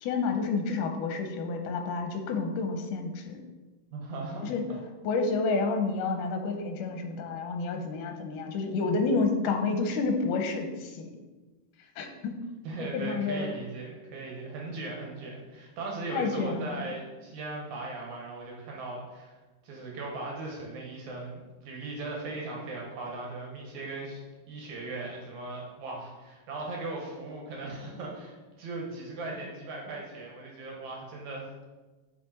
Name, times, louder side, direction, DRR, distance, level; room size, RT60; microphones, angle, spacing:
voice 1, 0.0-3.4 4.4-4.6 5.0-11.1 12.0-12.4 12.9-13.6 16.1-16.8, left 4 dB, 80° left, 4 dB, 2.4 m, -29 dB
voice 2, 3.9-4.5 12.6-19.3 19.6-31.5, right 2 dB, 65° right, -2 dB, 2.7 m, -38 dB
8.3 x 5.4 x 4.4 m, 1.2 s
omnidirectional pair, 3.8 m